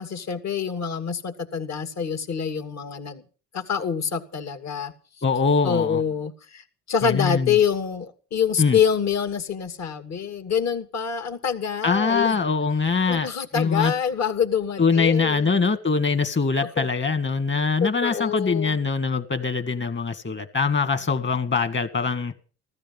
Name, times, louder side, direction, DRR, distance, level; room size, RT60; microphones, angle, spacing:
voice 1, 0.0-3.2 3.5-4.9 5.6-12.4 13.1-15.6 16.8-16.9 17.8-18.8, left 7 dB, 60° left, 8 dB, 2.3 m, -26 dB
voice 2, 5.2-6.0 7.0-7.6 8.6-8.8 11.8-13.9 14.8-22.3, left 4 dB, 40° left, 10 dB, 2.0 m, -23 dB
16.0 x 13.5 x 5.7 m, 0.38 s
cardioid pair, 90°, 30 cm